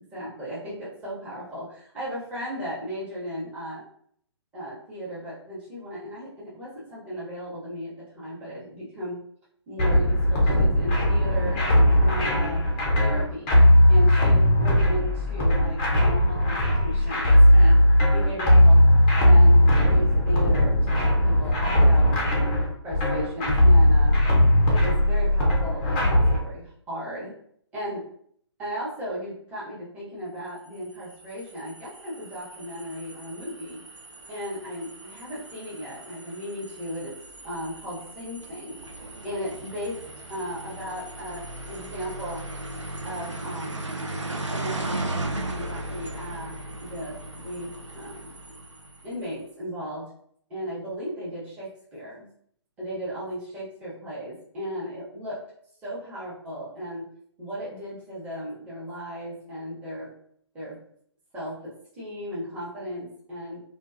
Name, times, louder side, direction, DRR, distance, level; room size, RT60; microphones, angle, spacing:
voice 1, 0.1-3.8 4.5-9.2 9.7-12.6 13.0-13.5 13.9-17.8 18.1-18.8 19.2-22.5 22.8-24.2 24.7-27.3 27.7-28.0 28.6-33.8 34.3-37.1 37.4-38.8 39.2-40.0 40.3-42.4 43.0-43.9 44.3-48.3 49.0-50.1 50.5-52.3 52.8-55.4 55.8-57.1 57.4-60.1 60.5-60.8 61.3-63.6, equal, 10° right, -9 dB, 0.8 m, -36 dB
sound 1, 9.8-26.4, left 1 dB, 15° left, 0.4 m, -18 dB
sound 2, 30.7-49.3, right 2 dB, 85° right, 0.5 m, -37 dB
2.4 x 2.1 x 2.5 m, 0.65 s
figure-of-eight pair, 135°, 15 cm